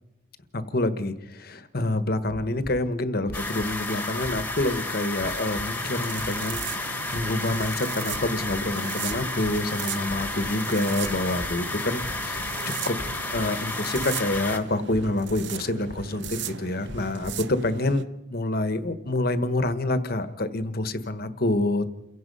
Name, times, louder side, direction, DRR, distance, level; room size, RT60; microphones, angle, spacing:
voice 1, 0.5-12.5 12.8-13.0 13.3-18.0 18.3-21.9, left 2 dB, 50° left, 11 dB, 1.3 m, -27 dB
sound 1, 2.6-2.9 3.2-3.8 4.2-4.8 5.2-5.8 6.1-6.7 7.1-7.8 8.1-8.7 9.0-9.7 10.0-10.6 11.0-11.6 12.0-12.5 12.9-13.5 13.9-14.5 14.9-15.5 15.9-16.4 16.8-17.4, equal, 25° left, 1.3 m, -42 dB
sound 2, 3.3-14.6, left 2 dB, 10° left, 1.5 m, -32 dB
sound 3, 5.7-18.0, right 7 dB, 60° right, 0.8 m, -38 dB
29.5 x 16.5 x 5.5 m, 0.93 s
head